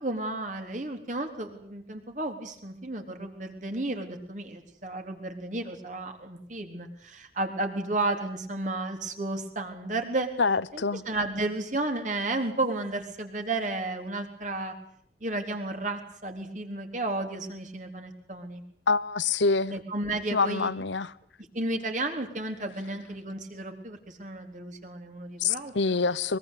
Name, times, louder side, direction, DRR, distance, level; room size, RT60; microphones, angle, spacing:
voice 1, 0.0-10.3 10.7-14.7 15.2-18.6 19.7-20.7 21.5-26.0, right 2 dB, 45° right, 3.9 m, -33 dB
voice 2, 10.4-11.0 18.9-19.7 20.3-21.1 25.4-26.4, left 4 dB, 85° left, 1.0 m, -26 dB
23.0 x 22.5 x 8.5 m
head